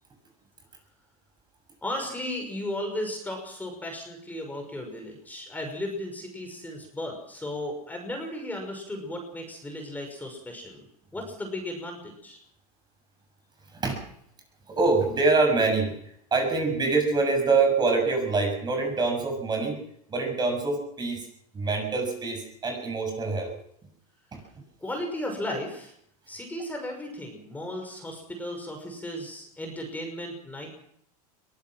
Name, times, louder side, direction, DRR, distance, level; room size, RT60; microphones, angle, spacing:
voice 1, 1.8-12.4 24.8-25.9 26.3-30.7, left 1 dB, 10° left, 3 dB, 6.0 m, -35 dB
voice 2, 14.7-16.0 16.3-19.8 20.1-21.3 21.5-23.5 24.3-24.6, right 3 dB, 20° right, 4 dB, 6.9 m, -25 dB
22.5 x 19.0 x 6.1 m, 0.71 s
supercardioid pair, 120°, 20 cm